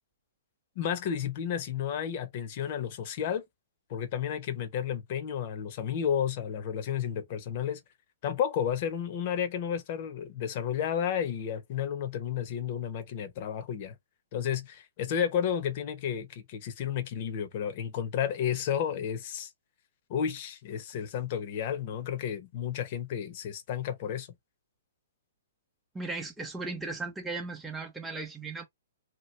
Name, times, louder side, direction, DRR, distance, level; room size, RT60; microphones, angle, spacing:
voice 1, 0.8-3.4 3.9-7.8 8.2-14.0 14.3-19.5 20.1-24.3, left 8 dB, 45° left, 0.8 m, -32 dB
voice 2, 25.9-28.6, right 3 dB, 5° right, 0.8 m, -36 dB
2.9 x 2.1 x 3.2 m
hypercardioid pair, 130°, 0 cm